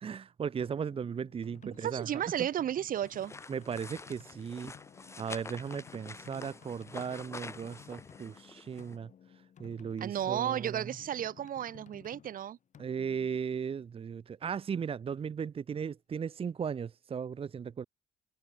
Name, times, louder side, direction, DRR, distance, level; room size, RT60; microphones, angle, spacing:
voice 1, 0.0-2.2 3.5-4.7 5.2-9.1 9.6-10.9 12.8-17.8, right 7 dB, 35° right, 1.1 m, -37 dB
sound 1, 0.6-14.1, left 8 dB, 45° left, 4.3 m, -56 dB
voice 2, 1.6-3.3 10.0-12.6, right 10 dB, 55° right, 2.4 m, -33 dB
sound 2, 3.0-9.0, left 3 dB, 15° left, 1.2 m, -47 dB
cardioid pair, 110°, 17 cm